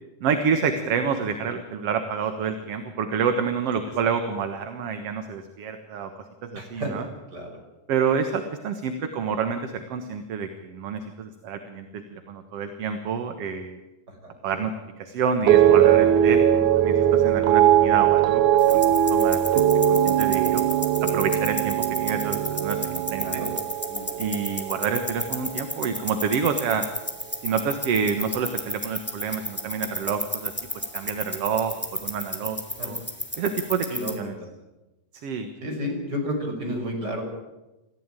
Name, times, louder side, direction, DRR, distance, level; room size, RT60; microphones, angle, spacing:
voice 1, 0.2-6.1 6.5-7.0 7.9-13.8 14.4-14.7 15.0-18.8 19.1-19.6 19.9-20.7 21.0-23.5 24.2-26.8 27.4-32.6 32.8-33.0 33.4-33.9 34.2-34.3 35.2-35.5, right 6 dB, 60° right, 7 dB, 2.3 m, -28 dB
voice 2, 6.5-7.6 14.2-14.3 23.2-23.5 23.9-24.1 32.8-32.9 33.9-34.5 35.6-37.2, equal, 35° right, 2 dB, 6.5 m, -31 dB
sound 1, 15.5-25.8 26.1-26.7, right 10 dB, 85° right, 2.4 m, -20 dB
sound 2, 18.6-34.2, left 1 dB, 5° left, 2.3 m, -33 dB
28.0 x 15.0 x 9.1 m, 1.0 s
omnidirectional pair, 3.3 m